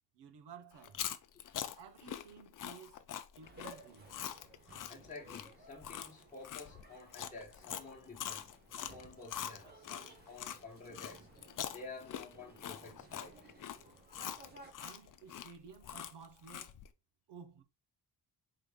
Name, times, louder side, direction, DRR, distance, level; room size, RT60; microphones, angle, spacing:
voice 1, 0.1-1.0 1.7-3.0 3.4-4.1 14.8-16.8 17.3-17.6, right 6 dB, 70° right, 0.8 m, -54 dB
Chewing mastication, 0.8-10.6 10.9-16.9, left 10 dB, 50° left, 0.5 m, -44 dB
voice 2, 1.3-1.8 4.9-11.3 11.7-13.4, left 3 dB, 20° left, 1.0 m, -51 dB
sound 1, 3.4-14.7, right 2 dB, 25° right, 1.0 m, -58 dB
5.0 x 3.8 x 2.3 m
wide cardioid pair, 165°, 42 cm